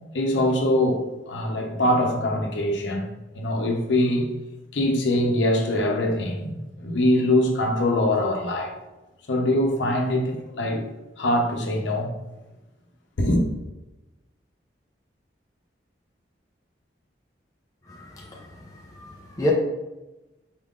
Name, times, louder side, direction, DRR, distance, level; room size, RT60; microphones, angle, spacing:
voice 1, 0.1-4.3 4.7-8.7 9.3-10.8 11.2-12.1 13.2-13.4, left 1 dB, 80° left, 2 dB, 0.7 m, -23 dB
voice 2, 17.9-19.5, equal, 20° left, -3 dB, 0.5 m, -31 dB
4.5 x 3.7 x 2.4 m, 1.1 s
head